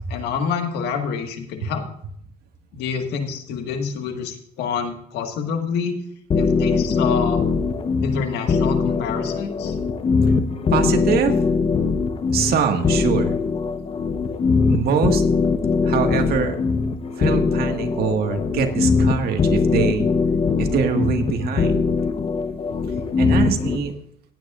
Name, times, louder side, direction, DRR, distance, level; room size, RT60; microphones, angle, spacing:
voice 1, 0.1-1.9 2.7-5.9 6.4-7.4 8.0-9.8, left 6 dB, 85° left, 5 dB, 1.6 m, -27 dB
sound 1, 6.3-23.8, left 4 dB, 35° left, 0.9 m, -21 dB
voice 2, 10.7-11.4 12.3-13.3 14.7-15.2 15.8-16.6 17.2-20.1 20.6-21.8 23.2-23.9, right 6 dB, 70° right, 5 dB, 1.7 m, -23 dB
17.5 x 9.4 x 2.5 m, 0.67 s
cardioid pair, 110°, 17 cm